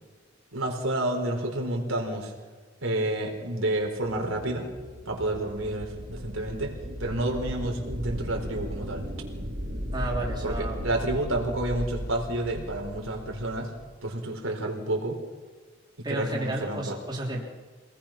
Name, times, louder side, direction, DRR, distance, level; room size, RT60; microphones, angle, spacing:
voice 1, 0.5-2.3 2.8-4.7 5.1-6.7 7.0-9.0 10.4-13.7 14.0-15.2 16.0-17.0, right 1 dB, 75° right, 1 dB, 4.2 m, -29 dB
sound 1, 4.0-13.9, equal, 50° right, 3.1 m, -36 dB
voice 2, 9.9-10.8 16.0-17.5, right 1 dB, 20° right, -3 dB, 3.3 m, -32 dB
26.0 x 19.5 x 5.9 m, 1.4 s
head